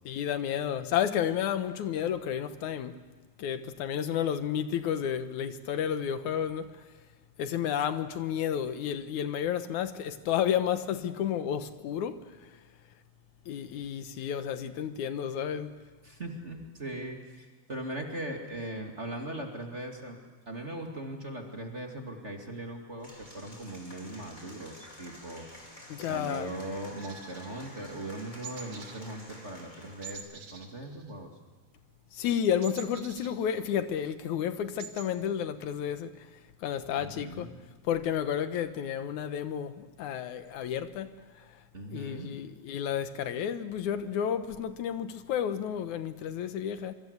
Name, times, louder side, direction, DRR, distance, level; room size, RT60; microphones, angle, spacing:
voice 1, 0.1-3.0 3.4-6.8 7.4-12.5 13.5-15.8 25.9-26.5 32.1-36.3 36.6-37.5 37.9-41.1 41.9-46.9, left 9 dB, 80° left, 2.5 m, -31 dB
voice 2, 16.0-20.2 20.5-25.5 26.1-31.3 37.0-37.6 41.7-42.3, right 1 dB, 25° right, 2.3 m, -39 dB
Applause / Crowd, 23.0-30.2, equal, 15° left, 4.3 m, -50 dB
sound 1, 27.0-28.1 28.4-29.0 29.3-29.5 30.0-31.6 31.8-33.9 34.3-34.4 34.6-35.1, right 6 dB, 75° right, 3.4 m, -47 dB
26.5 x 24.0 x 8.1 m
omnidirectional pair, 3.4 m